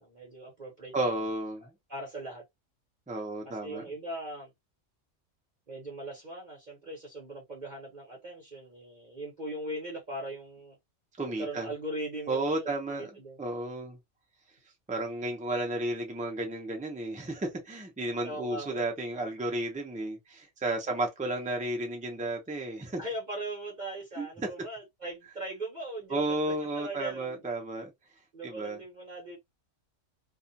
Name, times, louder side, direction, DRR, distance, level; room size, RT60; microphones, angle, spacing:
voice 1, 0.0-1.2 1.6-2.4 3.4-4.5 5.7-10.8 11.4-13.4 18.2-18.8 23.0-27.4 28.3-29.4, right 1 dB, 40° right, 1.0 m, -40 dB
voice 2, 0.9-1.7 3.1-3.8 11.2-11.7 12.3-13.1 13.4-14.0 14.9-23.0 24.2-24.5 26.1-27.9 28.4-28.8, right 2 dB, 10° right, 0.5 m, -33 dB
2.4 x 2.4 x 2.6 m
omnidirectional pair, 1.3 m